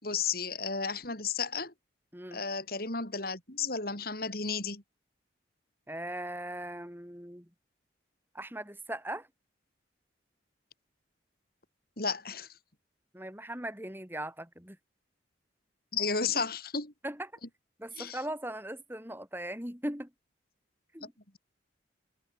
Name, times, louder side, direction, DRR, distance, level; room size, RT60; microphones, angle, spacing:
voice 1, 0.0-1.7 2.3-4.8 12.0-12.5 15.9-16.9 18.0-18.2, left 5 dB, 50° left, 5.2 m, -33 dB
voice 2, 5.9-7.5 8.3-9.3 13.1-14.8 17.0-17.3 17.8-20.1 20.9-21.1, right 1 dB, 10° right, 5.9 m, -39 dB
head